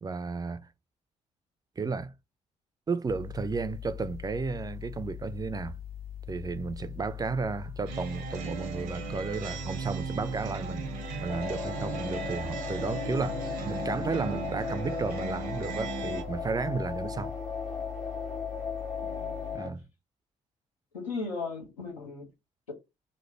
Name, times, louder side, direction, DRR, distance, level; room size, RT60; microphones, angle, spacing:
voice 1, 0.0-0.7 1.8-2.1 2.9-5.7 6.3-10.8 11.2-17.3 19.5-19.8, right 4 dB, 25° right, 0.4 m, -33 dB
sound 1, 3.1-19.6, left 10 dB, 70° left, 1.7 m, -42 dB
sound 2, 7.9-16.2, right 6 dB, 75° right, 0.7 m, -37 dB
sound 3, 11.3-19.7, left 4 dB, 45° left, 1.5 m, -37 dB
voice 2, 19.0-19.6 20.9-22.3, left 4 dB, 90° left, 0.9 m, -37 dB
3.2 x 2.1 x 4.2 m
hypercardioid pair, 40°, 16 cm